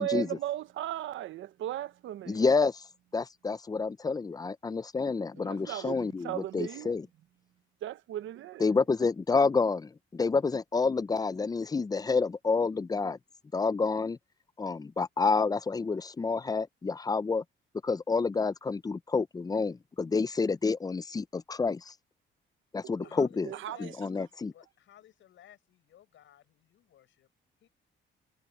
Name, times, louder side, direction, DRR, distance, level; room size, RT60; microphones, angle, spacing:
voice 1, 0.0-2.4 5.4-6.9 7.8-8.7 23.0-23.1 23.4-23.9, right 13 dB, 75° right, 1.1 m, -36 dB
voice 2, 2.3-2.8 3.1-7.0 8.6-13.2 13.5-14.2 14.6-17.4 17.8-21.9 22.7-23.5 23.8-24.5, left 4 dB, 20° left, 0.5 m, -29 dB
voice 3, 23.0-27.3 27.6-27.7, left 11 dB, 75° left, 7.8 m, -55 dB
cardioid pair, 90°, 20 cm